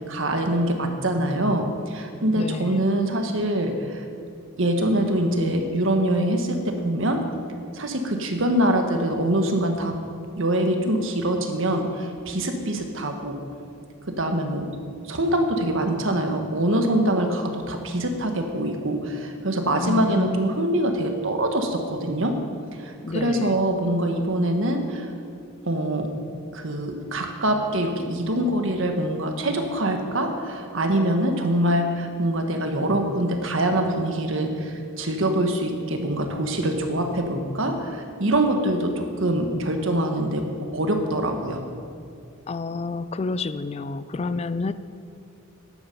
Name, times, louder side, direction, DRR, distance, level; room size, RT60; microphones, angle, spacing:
voice 1, 0.1-4.0 4.6-7.2 7.7-9.9 10.4-13.4 14.2-14.7 15.1-22.3 22.8-25.1 25.6-26.1 26.5-40.4 40.7-41.6, right 1 dB, 65° right, 4 dB, 1.5 m, -24 dB
voice 2, 2.3-2.8 19.8-20.5 23.0-23.5 42.5-44.7, left 3 dB, 30° left, 14 dB, 0.4 m, -29 dB
13.5 x 11.0 x 5.4 m, 2.4 s
head